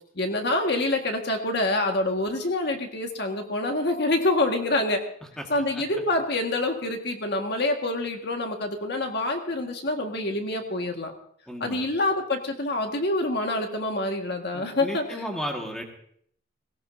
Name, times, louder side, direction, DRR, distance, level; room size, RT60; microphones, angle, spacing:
voice 1, 0.1-5.0 5.5-11.1 11.6-15.0, left 2 dB, 55° left, 3 dB, 1.7 m, -26 dB
voice 2, 11.5-11.9 14.5-15.8, equal, 5° left, 1 dB, 1.7 m, -34 dB
18.0 x 17.5 x 2.7 m, 0.65 s
head